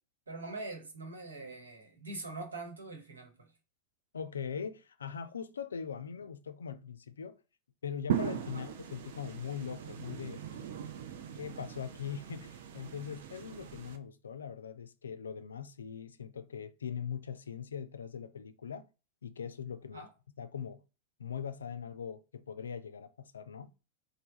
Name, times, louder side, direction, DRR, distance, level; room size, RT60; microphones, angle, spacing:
voice 1, 0.3-3.5 8.5-8.6 19.9-20.1, right 2 dB, 75° right, 1.1 m, -43 dB
voice 2, 4.1-7.4 7.8-10.6 11.4-18.9 19.2-20.0 20.4-20.8 21.2-23.7, left 7 dB, 70° left, 0.3 m, -41 dB
sound 1, 8.1-14.0, right 10 dB, 55° right, 0.5 m, -39 dB
3.3 x 2.1 x 3.9 m
figure-of-eight pair, 90°, 0 cm